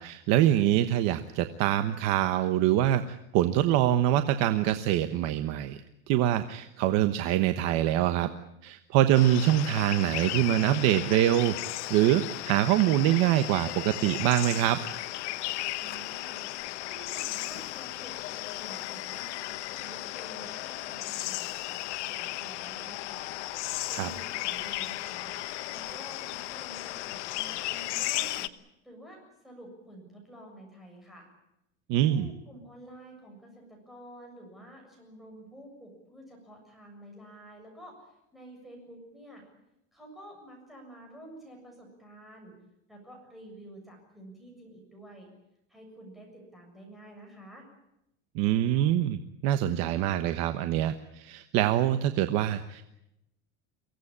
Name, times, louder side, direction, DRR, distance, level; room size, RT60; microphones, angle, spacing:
voice 1, 0.0-5.8 6.1-8.3 8.6-11.6 11.9-14.8 23.9-24.1 31.9-32.3 48.3-52.8, right 12 dB, 50° right, 9 dB, 1.2 m, -25 dB
sound 1, 9.1-28.5, left 17 dB, 90° left, 1.2 m, -35 dB
voice 2, 15.8-16.4 16.8-23.3 23.9-25.3 25.7-28.5 28.8-29.2 29.4-31.3 32.1-39.4 39.9-42.5 42.9-45.3 45.7-47.7, right 1 dB, ahead, 0 dB, 7.3 m, -49 dB
23.5 x 17.0 x 9.9 m, 0.86 s
supercardioid pair, 160°, 34 cm